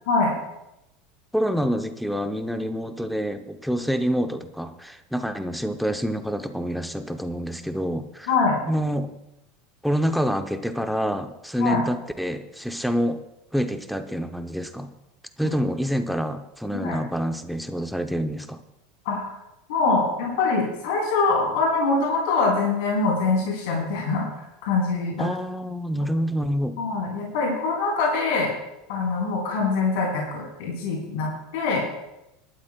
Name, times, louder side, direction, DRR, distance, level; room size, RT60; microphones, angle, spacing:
voice 1, 1.3-8.3 8.7-9.1 9.8-13.2 13.5-14.9 15.4-18.6 25.2-26.8, equal, ahead, 7 dB, 0.6 m, -27 dB
voice 2, 8.3-8.6 11.6-11.8 16.7-17.0 19.1-19.3 19.7-24.3 24.6-25.3 26.8-28.5 28.9-31.8, left 3 dB, 65° left, -3 dB, 3.8 m, -24 dB
24.0 x 12.5 x 2.2 m, 0.88 s
supercardioid pair, 180°, 0 cm